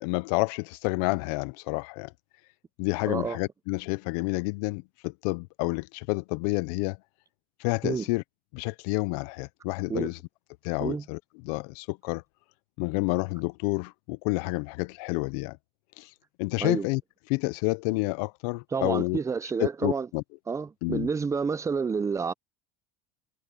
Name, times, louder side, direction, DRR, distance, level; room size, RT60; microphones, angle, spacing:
voice 1, 0.0-2.1 2.8-7.0 7.6-8.2 8.5-10.2 10.6-11.2 11.4-12.2 12.8-15.6 16.0-16.1 16.4-17.0 17.3-19.2 19.6-20.2 20.8-21.1, left 26 dB, 75° left, 0.6 m, -29 dB
voice 2, 3.1-3.4 7.8-8.1 9.9-10.1 10.8-11.0 16.6-16.9 18.7-20.1 20.5-22.3, right 5 dB, 15° right, 0.5 m, -29 dB
supercardioid pair, 120°, 20 cm